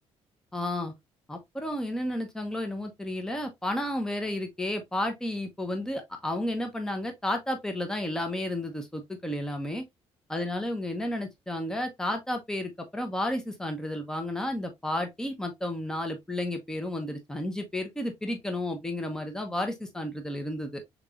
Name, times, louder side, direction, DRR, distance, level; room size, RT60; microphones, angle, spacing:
voice 1, 0.5-0.9 1.3-9.8 10.3-20.8, left 1 dB, 5° left, 0.9 m, -32 dB
6.6 x 3.0 x 2.5 m
cardioid pair, 155°, 11 cm